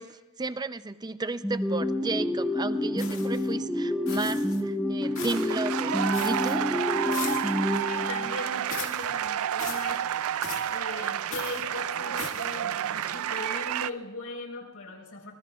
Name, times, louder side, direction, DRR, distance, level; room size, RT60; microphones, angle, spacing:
voice 1, 0.0-6.7, right 3 dB, 20° right, 12 dB, 0.5 m, -33 dB
sound 1, 1.4-8.6, left 1 dB, ahead, 0.9 m, -29 dB
sound 2, 3.0-3.5 4.1-4.6 5.2-5.6 6.1-6.6 7.1-7.6 8.7-9.1 9.6-9.9 10.4-10.8 11.3-11.6 12.2-12.5, left 7 dB, 65° left, 2.0 m, -39 dB
sound 3, 5.0-13.9, right 9 dB, 80° right, 0.4 m, -30 dB
voice 2, 7.8-10.0 10.6-15.3, left 2 dB, 80° left, 1 dB, 4.2 m, -39 dB
26.0 x 20.5 x 2.4 m, 1.1 s
head